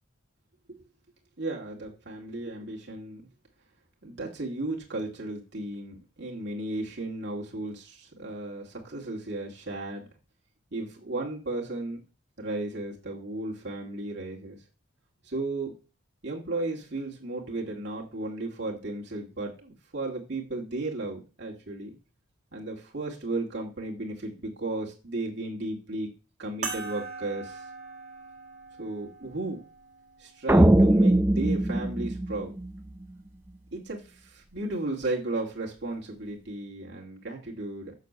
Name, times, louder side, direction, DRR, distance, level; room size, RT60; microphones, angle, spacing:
voice 1, 1.4-3.2 4.0-10.1 10.7-12.0 12.4-14.6 15.2-15.7 16.2-21.9 22.5-26.1 26.4-27.7 28.8-29.6 30.2-32.5 33.7-37.9, right 2 dB, 55° right, -2 dB, 2.1 m, -34 dB
sound 1, 26.6-31.4 32.2-32.3 34.4-34.6, right 4 dB, 35° right, 1.7 m, -41 dB
sound 2, 30.5-32.9, right 1 dB, 10° right, 0.6 m, -21 dB
6.7 x 6.6 x 6.7 m, 0.34 s
head